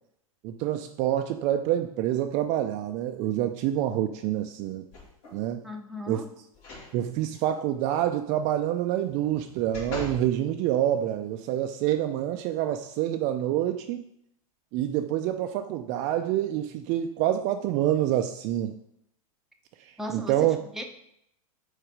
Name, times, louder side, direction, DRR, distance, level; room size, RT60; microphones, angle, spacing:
voice 1, 0.4-4.9 5.3-5.6 6.1-6.2 6.9-14.0 14.7-18.7 20.1-20.6, right 12 dB, 40° right, 6 dB, 0.4 m, -27 dB
sound 1, 4.9-5.5 6.5-6.9 7.3-7.4 9.0-10.3 10.9-11.0, left 2 dB, 55° left, 2.2 m, -40 dB
voice 2, 5.6-6.3 20.0-20.8, left 1 dB, ahead, 2 dB, 0.7 m, -37 dB
4.8 x 4.4 x 4.9 m, 0.74 s
hypercardioid pair, 110°, 19 cm